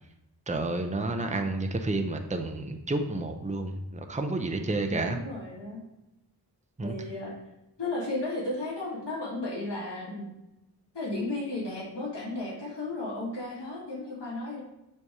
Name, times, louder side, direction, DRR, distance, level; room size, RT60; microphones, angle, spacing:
voice 1, 0.5-5.2 6.8-6.9, right 2 dB, 20° right, 5 dB, 0.7 m, -30 dB
voice 2, 4.9-5.8 6.8-7.3 7.8-10.3 10.9-14.6, left 2 dB, 85° left, -5 dB, 1.7 m, -34 dB
7.0 x 3.5 x 4.8 m, 0.90 s
cardioid pair, 40°, 40 cm